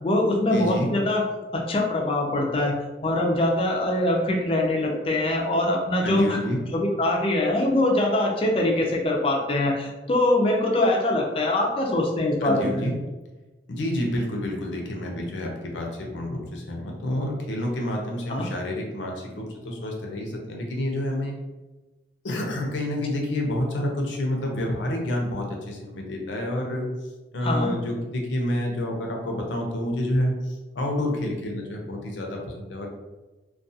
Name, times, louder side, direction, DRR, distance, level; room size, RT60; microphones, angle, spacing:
voice 1, 0.0-1.2 1.5-2.7 3.0-6.4 6.7-12.8 18.3-18.5 27.4-27.7, left 1 dB, 30° left, 0 dB, 0.4 m, -23 dB
voice 2, 0.5-0.9 6.0-6.6 12.4-12.9 13.7-21.3 22.2-26.9 27.3-32.9, left 1 dB, 85° left, 1 dB, 0.6 m, -28 dB
2.3 x 2.2 x 2.6 m, 1.2 s
head